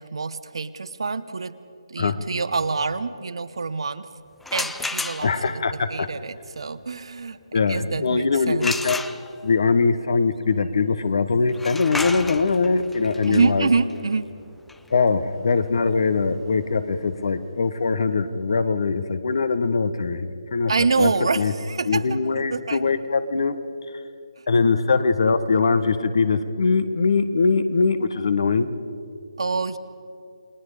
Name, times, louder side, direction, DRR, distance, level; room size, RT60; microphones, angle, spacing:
voice 1, 0.0-1.6 1.9-4.1 4.5-8.7 13.3-14.3 20.7-22.9 29.4-29.8, right 4 dB, 60° right, 13 dB, 1.0 m, -26 dB
sound 1, 4.4-5.6 8.6-9.6 11.5-17.2, left 3 dB, 5° left, 0.4 m, -33 dB
voice 2, 5.2-6.1 7.5-9.0 9.4-13.7 14.9-21.1 21.4-21.5 21.9-23.6 24.5-28.7, left 4 dB, 55° left, 12 dB, 1.3 m, -22 dB
29.0 x 20.0 x 5.0 m, 2.5 s
figure-of-eight pair, 150°, 3 cm